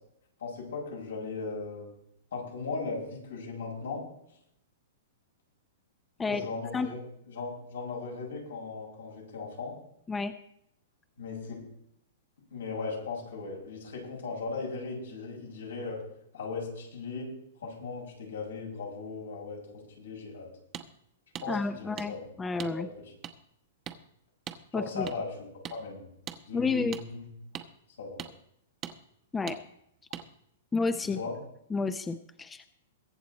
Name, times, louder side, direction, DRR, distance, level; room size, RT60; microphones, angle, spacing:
voice 1, 0.4-1.9 2.3-4.0 6.2-7.0 7.3-9.7 11.2-11.6 12.5-16.0 16.3-17.3 17.6-20.5 21.4-22.2 22.7-22.8 24.7-25.3 25.7-26.1 26.4-27.3 28.0-28.2 31.1-31.3, left 4 dB, 90° left, -2 dB, 6.7 m, -37 dB
sound 1, 20.7-20.9 21.4-21.5 22.0-22.1 22.6-22.7 23.2-23.3 23.9-24.0 24.5-24.6 25.1-25.2 25.6-25.8 26.3-26.4 26.9-27.0 27.5-27.7 28.2-28.3 28.8-29.0 29.5-29.6 30.1-30.3, right 10 dB, 30° right, 1.0 m, -39 dB
voice 2, 21.5-22.9 24.7-25.1 26.5-27.0 29.3-29.6 30.7-31.2 31.7-32.7, left 4 dB, 10° left, 10 dB, 0.7 m, -30 dB
22.5 x 7.6 x 4.2 m, 0.74 s
hypercardioid pair, 135°, 0 cm